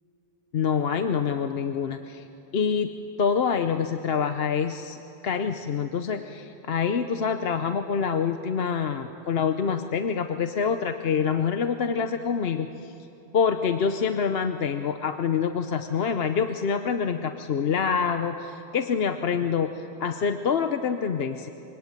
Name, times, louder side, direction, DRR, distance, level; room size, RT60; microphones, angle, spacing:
voice 1, 0.5-2.3 2.5-12.9 13.3-21.5, left 6 dB, 70° left, 7 dB, 1.0 m, -26 dB
25.5 x 23.5 x 9.1 m, 3.0 s
omnidirectional pair, 1.1 m